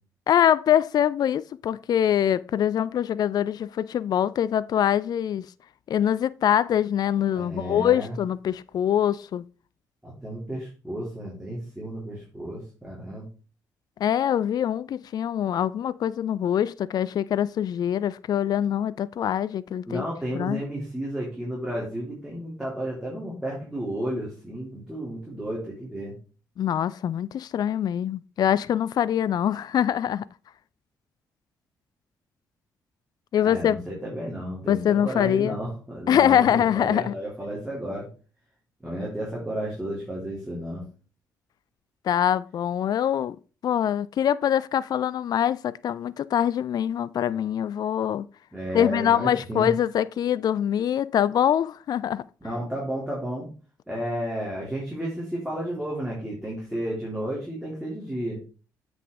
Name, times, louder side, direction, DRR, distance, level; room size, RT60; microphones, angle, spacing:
voice 1, 0.3-5.5 5.9-9.4 14.0-20.0 20.3-20.6 26.6-30.2 33.3-33.8 34.7-35.6 36.1-37.1 42.0-43.4 43.6-48.3 48.7-52.2, left 10 dB, 45° left, 0.3 m, -24 dB
voice 2, 7.3-8.1 10.0-13.3 19.9-26.1 33.4-38.1 38.8-40.8 48.5-49.7 52.4-53.4 53.9-58.4, right 1 dB, 5° right, 3.4 m, -32 dB
7.8 x 6.1 x 3.4 m
figure-of-eight pair, 40°, 9 cm